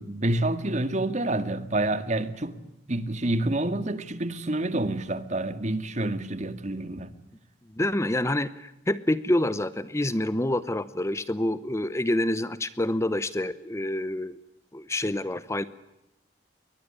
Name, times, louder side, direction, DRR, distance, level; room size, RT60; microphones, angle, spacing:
voice 1, 0.0-2.6 2.9-7.1, right 1 dB, 40° right, 1.9 m, -28 dB
voice 2, 7.8-14.4 14.7-15.6, left 1 dB, 15° left, 0.8 m, -27 dB
22.5 x 20.5 x 9.8 m
head